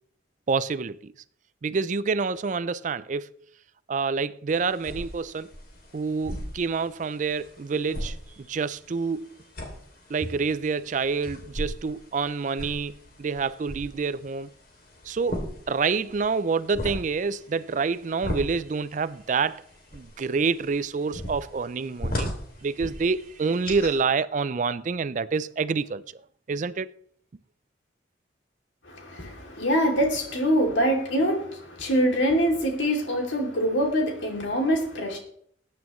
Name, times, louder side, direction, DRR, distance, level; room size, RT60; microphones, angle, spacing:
voice 1, 0.5-1.0 1.6-3.3 3.9-5.5 5.9-9.3 10.1-14.5 15.1-15.4 15.7-19.6 19.9-22.3 22.6-26.0 26.5-26.9, right 4 dB, 40° right, 0.4 m, -27 dB
sound 1, 4.5-24.0, equal, 50° left, 2.7 m, -38 dB
voice 2, 28.8-35.2, equal, 80° left, 2.8 m, -24 dB
20.5 x 9.2 x 3.1 m
head